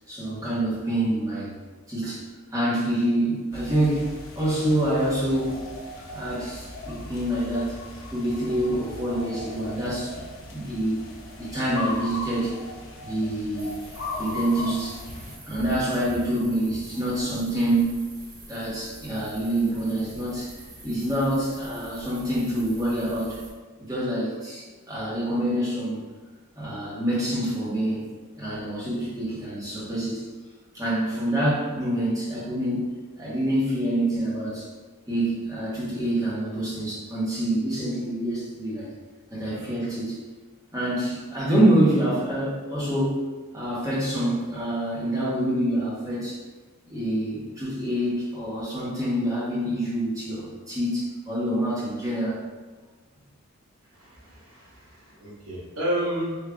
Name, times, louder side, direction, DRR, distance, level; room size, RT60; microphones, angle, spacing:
voice 1, 0.1-1.5 1.9-2.2 2.5-4.1 4.4-5.6 6.1-7.8 8.1-10.2 10.5-12.5 13.0-13.8 14.2-15.0 15.5-18.1 18.5-20.5 20.8-23.4 23.9-26.0 26.6-30.2 30.7-34.7 35.1-38.9 39.3-40.2 40.7-43.2 43.5-46.4 46.9-52.4, right 1 dB, 15° right, -8 dB, 1.1 m, -26 dB
sound 1, 3.5-15.4, left 2 dB, 60° left, 0.6 m, -38 dB
sound 2, 13.6-23.5, right 1 dB, 45° right, 1.4 m, -45 dB
voice 2, 53.9-56.4, equal, 80° right, -6 dB, 1.2 m, -31 dB
3.7 x 2.6 x 3.4 m, 1.4 s
head